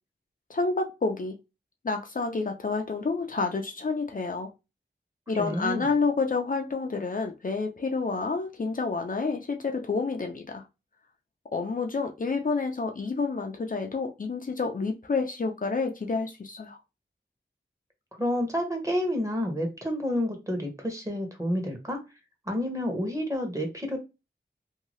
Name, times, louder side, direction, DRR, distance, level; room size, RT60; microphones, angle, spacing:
voice 1, 0.5-1.4 1.8-4.5 5.3-10.7 11.5-16.8, left 4 dB, 50° left, 0.5 m, -29 dB
voice 2, 5.4-5.8 18.2-22.0 22.5-24.0, equal, 15° right, 1.0 m, -29 dB
2.7 x 2.3 x 3.0 m
wide cardioid pair, 65°, 19 cm